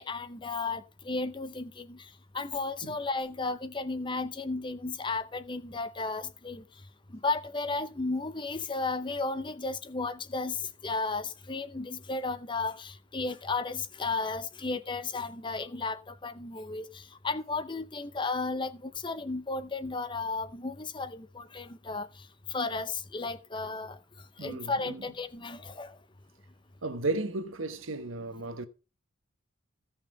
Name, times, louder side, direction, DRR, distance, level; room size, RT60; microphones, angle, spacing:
voice 1, 0.0-2.0 2.3-6.6 7.1-22.1 22.5-24.0 24.4-26.0, left 3 dB, 25° left, 0.7 m, -34 dB
voice 2, 24.4-25.0 26.8-28.7, right 2 dB, 75° right, 1.1 m, -34 dB
15.5 x 5.8 x 4.8 m
head